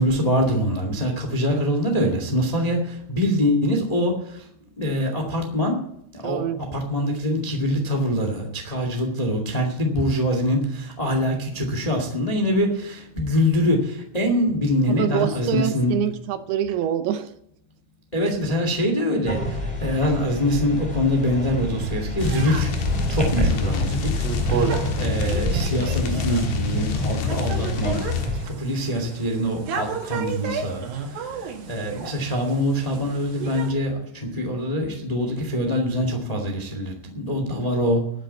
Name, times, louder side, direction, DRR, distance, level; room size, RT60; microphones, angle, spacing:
voice 1, 0.0-4.4 4.8-5.8 6.1-16.0 18.1-22.7 23.1-28.1 28.4-30.8 31.1-38.1, equal, 65° left, 3 dB, 0.3 m, -24 dB
voice 2, 6.2-6.6 14.9-17.3 24.5-24.8, right 10 dB, 80° right, 10 dB, 2.4 m, -26 dB
sound 1, 19.3-28.5, equal, ahead, 3.8 m, -28 dB
sound 2, 22.2-28.3, left 5 dB, 85° left, 3.6 m, -27 dB
sound 3, 22.2-33.7, right 6 dB, 60° right, 3.3 m, -33 dB
12.5 x 8.9 x 8.1 m, 0.71 s
omnidirectional pair, 5.1 m